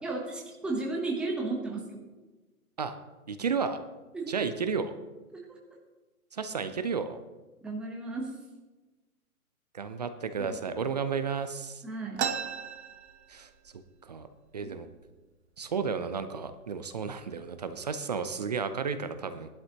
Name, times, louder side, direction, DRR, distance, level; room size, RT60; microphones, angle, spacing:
voice 1, 0.0-2.0 4.1-4.3 5.3-5.4 7.6-8.3 10.4-10.8 11.8-12.2 14.6-14.7, right 3 dB, ahead, -1 dB, 0.9 m, -34 dB
voice 2, 3.3-3.8 4.3-4.9 6.3-7.2 9.7-11.8 13.3-13.5 14.0-14.3 14.5-14.9 15.6-19.5, right 5 dB, 30° right, 10 dB, 0.5 m, -32 dB
sound 1, 12.2-13.8 14.1-14.2 14.5-15.1 15.7-15.8 16.5-16.7 17.2-17.6, right 8 dB, 45° right, 1.0 m, -35 dB
17.0 x 11.5 x 2.9 m, 1.2 s
figure-of-eight pair, 135°, 45 cm